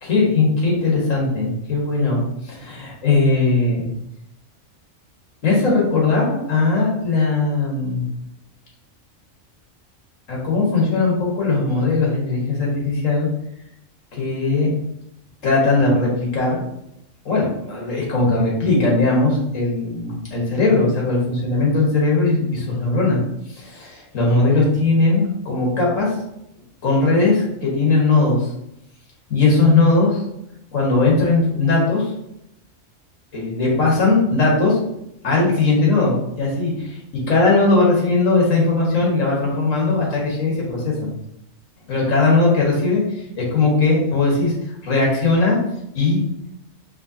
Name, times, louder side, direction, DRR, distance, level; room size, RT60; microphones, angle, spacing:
voice 1, 0.0-3.9 5.4-8.1 10.3-13.3 14.1-14.7 15.4-16.6 17.2-23.2 23.5-26.2 26.8-28.5 29.3-30.2 30.7-32.1 33.3-34.8 35.2-37.0 37.3-41.1 41.9-43.0 43.4-44.5 44.8-45.6 45.9-46.2, left 3 dB, 80° left, -3 dB, 1.8 m, -19 dB
5.4 x 3.0 x 2.8 m, 0.81 s
omnidirectional pair, 1.3 m